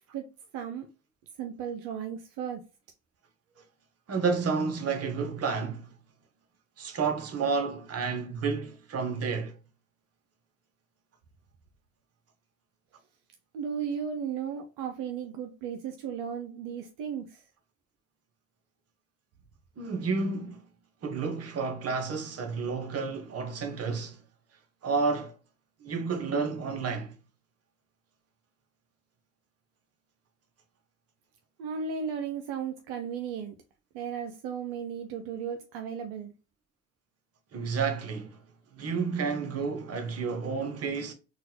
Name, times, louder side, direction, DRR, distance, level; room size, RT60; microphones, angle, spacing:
voice 1, 0.5-0.9 1.4-2.6 13.5-17.4 31.6-33.6 33.9-36.3, right 7 dB, 80° right, 0.5 m, -35 dB
voice 2, 4.1-5.9 6.8-9.6 19.8-20.6 21.0-24.2 24.8-25.3 25.8-27.1 37.5-38.4 38.8-41.1, right 5 dB, 50° right, 1.0 m, -30 dB
3.8 x 2.2 x 2.8 m
hypercardioid pair, 50°, 32 cm